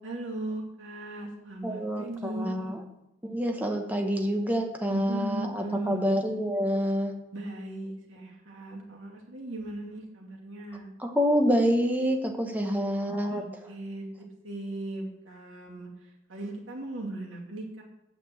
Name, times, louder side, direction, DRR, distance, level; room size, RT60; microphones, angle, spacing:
voice 1, 0.0-2.8 4.9-6.0 7.3-10.9 12.7-12.8 13.3-15.9 16.3-17.8, right 2 dB, 85° right, -1 dB, 2.5 m, -38 dB
voice 2, 1.6-2.8 3.2-7.1 11.0-13.4, equal, 10° right, 2 dB, 1.1 m, -27 dB
8.3 x 6.0 x 7.7 m, 0.88 s
head